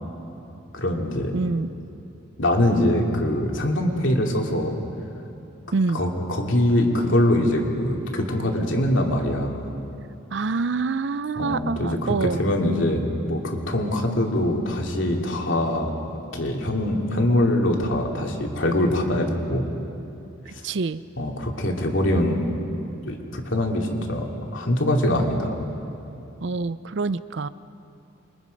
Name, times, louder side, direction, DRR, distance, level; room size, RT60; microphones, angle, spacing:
voice 1, 0.7-1.3 2.4-4.7 5.9-9.7 11.4-19.7 20.5-20.6 21.2-22.5 23.1-24.3 24.5-25.6, left 1 dB, 65° left, 0 dB, 2.7 m, -23 dB
voice 2, 1.3-1.7 5.7-6.0 10.3-12.4 20.5-21.0 26.4-27.5, right 4 dB, 55° right, 15 dB, 0.5 m, -26 dB
27.5 x 23.0 x 5.3 m, 2.7 s
head